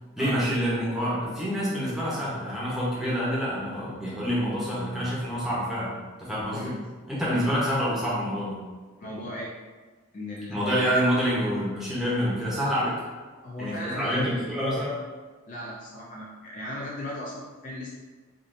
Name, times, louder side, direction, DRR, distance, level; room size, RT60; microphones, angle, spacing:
voice 1, 0.2-5.9 6.2-6.7 7.1-8.6 10.5-13.0 13.6-15.0, equal, ahead, -8 dB, 0.8 m, -27 dB
voice 2, 6.5-6.8 7.3-7.5 9.0-9.5 10.1-10.9 13.4-14.1 14.5-14.6 15.5-17.9, left 1 dB, 40° left, -4 dB, 0.3 m, -37 dB
3.5 x 2.5 x 2.5 m, 1.4 s
head